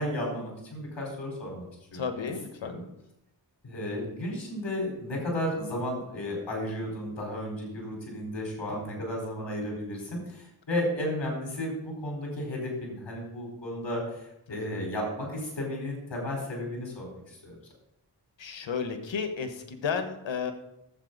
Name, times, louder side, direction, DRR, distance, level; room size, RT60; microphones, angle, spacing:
voice 1, 0.0-1.6 1.9-2.0 2.6-2.8 3.6-17.5, left 1 dB, 70° left, 0 dB, 4.4 m, -33 dB
voice 2, 1.9-2.7 14.5-14.9 18.4-20.5, left 6 dB, 85° left, 8 dB, 1.2 m, -33 dB
11.5 x 7.9 x 4.0 m, 0.85 s
cardioid pair, 40°, 44 cm